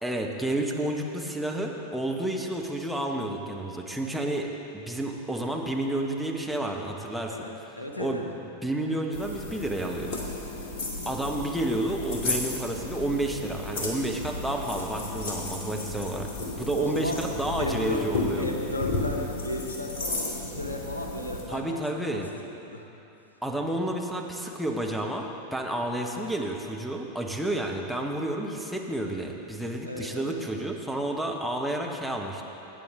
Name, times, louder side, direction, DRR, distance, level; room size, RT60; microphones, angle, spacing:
voice 1, 0.0-4.5 4.7-7.4 8.0-8.2 8.6-10.2 11.1-16.3 16.6-18.5 21.5-22.3 23.4-32.4, right 1 dB, ahead, 0 dB, 1.0 m, -30 dB
voice 2, 7.3-8.3 16.8-17.2 17.6-21.8 22.0-22.2 22.6-22.9 29.8-30.4, left 1 dB, 85° left, 2 dB, 1.1 m, -34 dB
sound 1, 9.1-21.4, left 2 dB, 50° left, 2.1 m, -33 dB
17.5 x 9.0 x 3.7 m, 3.0 s
figure-of-eight pair, 90°, 0 cm